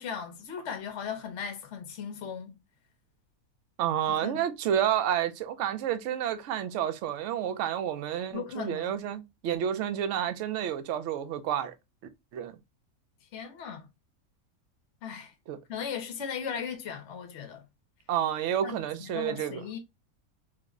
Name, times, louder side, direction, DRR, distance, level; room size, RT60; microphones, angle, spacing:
voice 1, 0.0-2.5 4.1-4.4 8.3-9.0 13.3-13.8 15.0-15.3 15.7-17.6 18.6-19.8, left 7 dB, 60° left, 0.9 m, -37 dB
voice 2, 3.8-11.7 12.3-12.6 15.5-15.6 18.1-19.6, right 10 dB, 65° right, 0.8 m, -30 dB
3.2 x 2.1 x 3.6 m
omnidirectional pair, 1.6 m